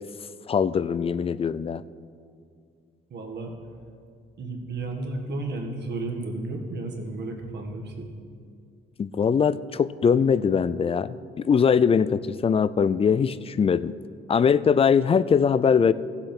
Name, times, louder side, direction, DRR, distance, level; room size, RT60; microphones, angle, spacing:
voice 1, 0.5-1.8 9.0-13.9 14.3-15.9, left 6 dB, 30° left, 16 dB, 0.3 m, -21 dB
voice 2, 3.1-3.5 4.4-8.1, right 2 dB, 60° right, 2 dB, 1.7 m, -33 dB
15.0 x 7.7 x 4.5 m, 2.2 s
cardioid pair, 90°, 20 cm